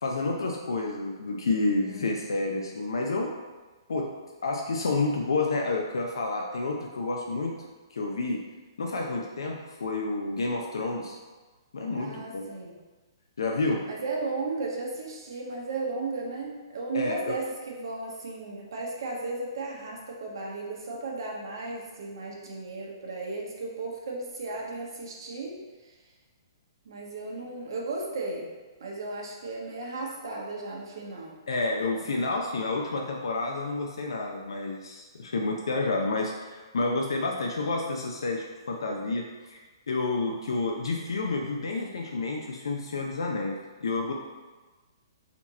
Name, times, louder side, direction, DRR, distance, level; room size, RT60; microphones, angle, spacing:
voice 1, 0.0-3.3 3.9-4.1 4.4-7.6 7.9-8.4 8.8-11.2 11.7-12.4 13.4-13.9 16.9-17.4 31.5-39.6 39.9-44.1, left 3 dB, 85° left, 0 dB, 0.5 m, -29 dB
voice 2, 1.8-2.2 11.9-12.7 13.9-25.6 25.8-25.9 26.8-28.5 28.8-31.3, right 3 dB, 65° right, -2 dB, 1.2 m, -35 dB
4.2 x 2.9 x 4.0 m, 1.3 s
hypercardioid pair, 150°, 2 cm